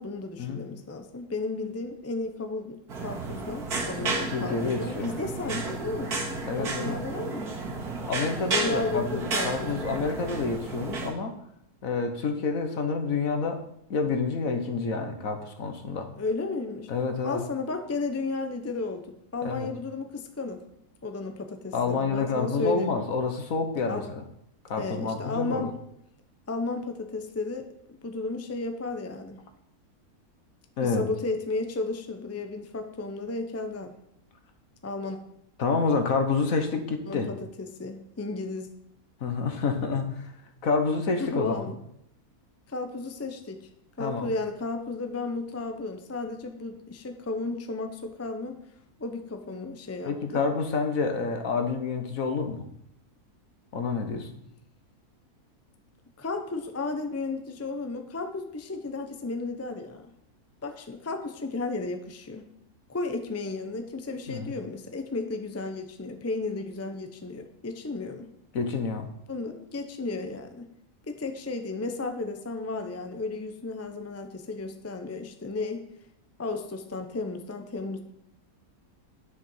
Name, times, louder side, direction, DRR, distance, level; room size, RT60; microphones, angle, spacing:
voice 1, 0.0-6.2 6.6-7.6 8.6-9.9 16.2-16.9 17.2-20.6 21.0-23.0 23.9-24.0 24.8-25.7 26.5-29.4 30.8-34.0 34.8-35.2 37.1-38.7 41.2-41.8 42.7-43.7 44.0-48.6 49.0-50.4 56.2-60.1 60.6-62.5 62.9-68.3 69.3-70.7 71.0-75.9 76.4-78.0, left 3 dB, 15° left, 6 dB, 0.6 m, -33 dB
sound 1, 2.9-11.1, right 3 dB, 85° right, 2.4 m, -32 dB
voice 2, 4.0-5.1 6.5-7.0 8.0-11.3 11.8-13.6 13.9-16.1 16.9-17.4 19.4-19.7 21.7-24.2 24.7-25.7 30.8-31.0 35.6-37.3 39.2-40.3 40.6-41.6 44.0-44.3 50.0-52.6 53.7-54.3 64.3-64.5 68.5-69.1, left 4 dB, 65° left, 6 dB, 1.5 m, -28 dB
10.5 x 6.4 x 5.6 m, 0.77 s
omnidirectional pair, 1.6 m